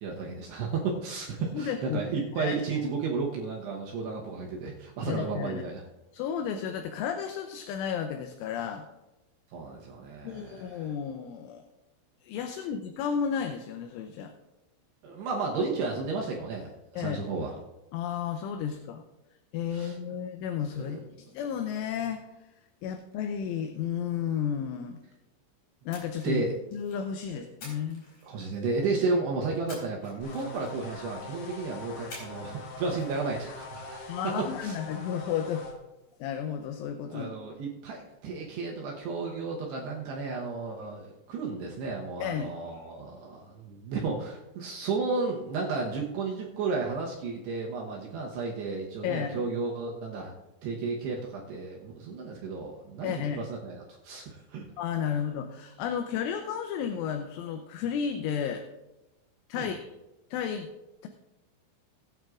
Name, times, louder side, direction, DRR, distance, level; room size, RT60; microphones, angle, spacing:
voice 1, 0.0-5.8 9.5-10.9 12.6-12.7 15.0-17.5 19.7-20.0 20.7-21.0 26.2-26.5 27.3-27.4 28.2-34.8 37.0-50.3 50.6-54.6 59.5-59.7, right 4 dB, 75° right, -2 dB, 2.6 m, -33 dB
voice 2, 1.4-2.0 2.3-2.6 5.1-5.6 6.1-8.9 10.2-11.6 12.2-14.3 16.9-17.2 17.9-19.0 19.5-21.0 21.3-22.3 22.8-25.0 25.9-26.4 26.7-28.0 34.1-35.7 36.2-37.3 42.2-42.5 49.0-49.4 53.0-53.4 54.8-58.7 59.5-59.9 60.3-60.7, left 8 dB, 80° left, 6 dB, 3.0 m, -32 dB
Splash splatter, 25.9-27.1 27.6-28.8 29.7-31.0 32.1-32.6 32.8-33.1, left 1 dB, 35° left, 5.2 m, -48 dB
sound 1, 30.2-35.7, left 3 dB, 60° left, 3.4 m, -43 dB
19.5 x 9.1 x 2.4 m, 0.99 s
omnidirectional pair, 5.9 m